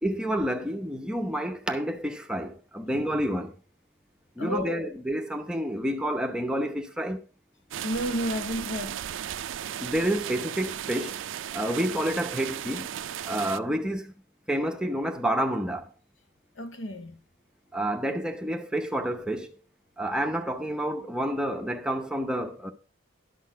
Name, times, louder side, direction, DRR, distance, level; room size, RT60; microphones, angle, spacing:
voice 1, 0.0-3.5 4.4-7.2 9.8-11.2 11.5-12.9 13.2-14.1 14.5-15.9 17.7-19.5 20.0-22.7, right 1 dB, 5° right, 0.7 m, -29 dB
voice 2, 4.4-4.9 7.8-9.1 16.6-17.2, equal, 70° left, 1.1 m, -32 dB
sound 1, 7.7-13.6, right 10 dB, 70° right, 0.4 m, -35 dB
11.5 x 6.3 x 4.7 m
head